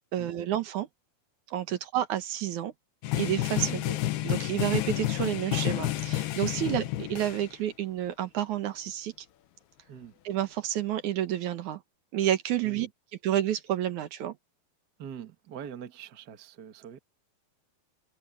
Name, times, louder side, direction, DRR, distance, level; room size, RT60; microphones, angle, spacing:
voice 1, 0.1-0.9 1.5-2.7 3.2-4.0 4.2-9.1 10.2-11.8 12.1-12.9 13.2-14.4, right 11 dB, 60° right, 2.3 m, -30 dB
sound 1, 3.0-7.5, left 15 dB, 85° left, 3.1 m, -30 dB
sound 2, 6.8-10.0, left 18 dB, 40° left, 7.9 m, -67 dB
voice 2, 15.0-17.0, right 8 dB, 85° right, 0.9 m, -43 dB
omnidirectional pair, 4.4 m